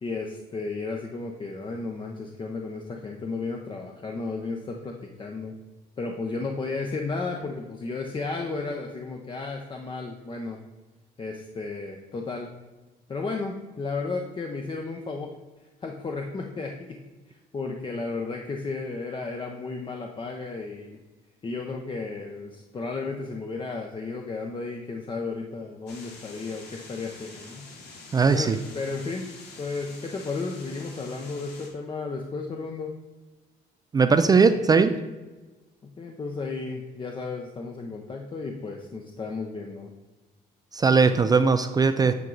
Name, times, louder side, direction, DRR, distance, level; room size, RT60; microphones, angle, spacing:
voice 1, 0.0-5.5 6.0-10.6 11.2-12.5 13.1-15.3 15.8-17.0 17.3-21.0 21.4-27.6 28.3-29.3 29.6-32.9 35.8-39.9, left 3 dB, 30° left, 2 dB, 0.7 m, -33 dB
sound 1, 25.9-31.7, left 3 dB, 75° left, 1.7 m, -46 dB
voice 2, 28.1-28.6 33.9-34.9 40.7-42.1, right 5 dB, 25° right, 9 dB, 0.4 m, -19 dB
9.3 x 4.6 x 3.9 m, 1.2 s
cardioid pair, 110°, 17 cm